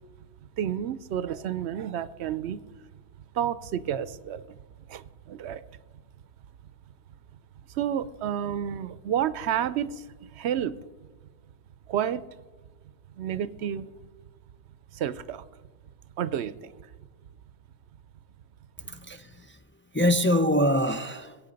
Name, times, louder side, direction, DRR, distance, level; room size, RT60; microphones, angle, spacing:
voice 1, 0.6-2.6 3.3-4.6 4.9-5.6 7.7-10.8 11.9-12.3 13.2-13.9 14.9-15.5 16.2-16.7, right 9 dB, 90° right, 0.9 m, -30 dB
voice 2, 18.8-19.6 19.9-21.4, left 1 dB, 15° left, 0.4 m, -25 dB
21.5 x 8.7 x 5.2 m
omnidirectional pair, 1.1 m